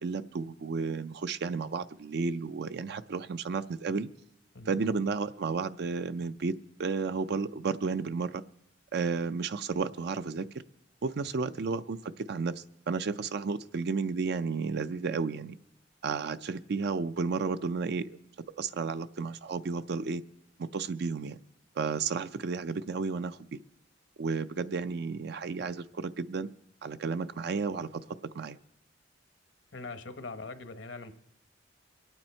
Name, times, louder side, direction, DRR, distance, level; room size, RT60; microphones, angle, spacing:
voice 1, 0.0-4.1 4.7-6.5 6.8-8.4 8.9-10.5 11.0-15.6 16.0-18.2 18.6-20.2 20.6-21.4 21.8-23.6 24.2-26.5 26.8-28.6, right 4 dB, 60° right, 0.4 m, -32 dB
voice 2, 29.7-31.1, left 3 dB, 80° left, 1.1 m, -42 dB
23.0 x 9.0 x 4.4 m
head